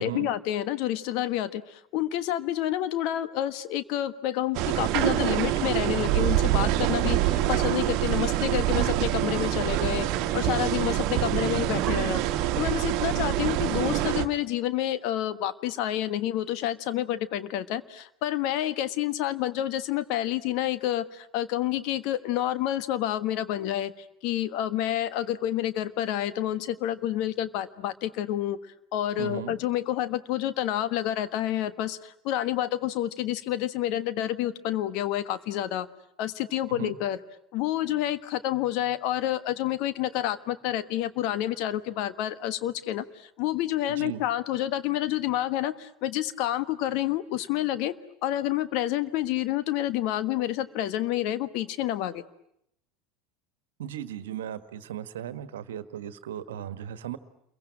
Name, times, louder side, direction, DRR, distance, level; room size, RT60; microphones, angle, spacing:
voice 1, 0.0-10.1 10.3-12.2 12.6-23.9 24.2-28.6 28.9-35.9 36.2-37.2 37.5-47.9 48.2-52.2, left 12 dB, 55° left, 12 dB, 1.4 m, -29 dB
sound 1, 4.5-14.3, right 13 dB, 50° right, 1.4 m, -25 dB
voice 2, 13.0-13.3 29.2-29.6 36.7-37.0 43.9-44.2 53.8-57.2, right 10 dB, 70° right, 12 dB, 1.4 m, -36 dB
29.0 x 22.5 x 8.8 m, 0.75 s
figure-of-eight pair, 75°, 0 cm